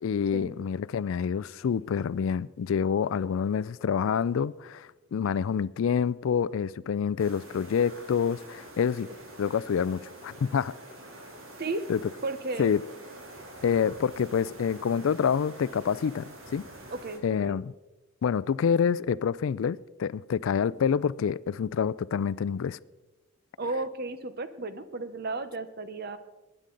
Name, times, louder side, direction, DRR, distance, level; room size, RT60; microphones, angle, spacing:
voice 1, 0.0-9.1 9.4-10.7 11.9-12.0 12.6-12.9 13.6-16.7 17.2-17.7 18.2-22.8, left 7 dB, 65° left, 0.3 m, -27 dB
sound 1, 7.2-17.2, right 1 dB, 70° right, 2.9 m, -46 dB
voice 2, 12.2-12.7 16.9-17.6 23.6-26.2, right 2 dB, 45° right, 0.8 m, -34 dB
20.5 x 9.9 x 3.9 m
head